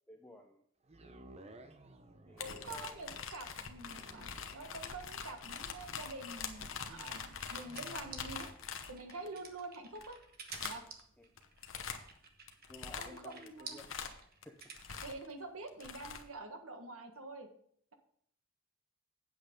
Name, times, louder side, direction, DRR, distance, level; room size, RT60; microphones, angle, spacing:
voice 1, 0.1-0.6 2.3-3.0 11.2-11.3 12.7-13.9 14.3-14.7, equal, 5° left, 2 dB, 0.6 m, -55 dB
sound 1, 0.8-15.0 15.6-15.7, right 2 dB, 30° right, 0.7 m, -60 dB
sound 2, 2.4-9.3 10.0-10.1 10.5-11.0 11.4-12.1 12.5-15.3 15.7-16.2, left 6 dB, 65° left, 1.0 m, -44 dB
voice 2, 2.4-8.5 8.9-10.2 10.6-10.8 13.0-13.8 15.0-17.5, right 2 dB, 85° right, 5 dB, 1.5 m, -47 dB
sound 3, 6.6-15.2, right 5 dB, 45° right, 1.2 m, -51 dB
8.6 x 7.6 x 5.2 m, 0.66 s
head